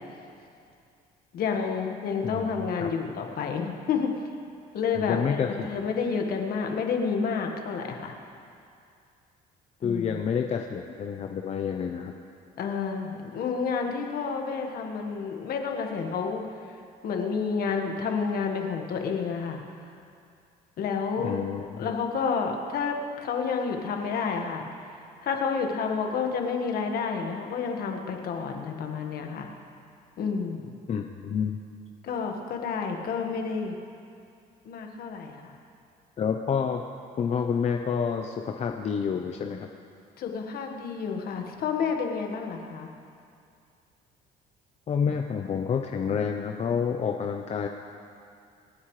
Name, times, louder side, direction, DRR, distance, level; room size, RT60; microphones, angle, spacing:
voice 1, 1.3-4.1 4.7-8.1 9.8-10.2 12.6-16.4 17.0-19.6 20.8-21.4 21.8-24.7 25.2-29.5 30.2-30.7 32.0-33.7 34.6-35.5 40.2-42.9, left 5 dB, 65° left, 3 dB, 1.6 m, -30 dB
voice 2, 4.9-5.9 9.8-12.1 21.2-21.7 30.9-31.6 36.2-36.8 37.2-39.7 44.9-47.7, left 6 dB, 40° left, 4 dB, 0.7 m, -28 dB
27.0 x 9.7 x 3.3 m, 2.4 s
cardioid pair, 110°, 17 cm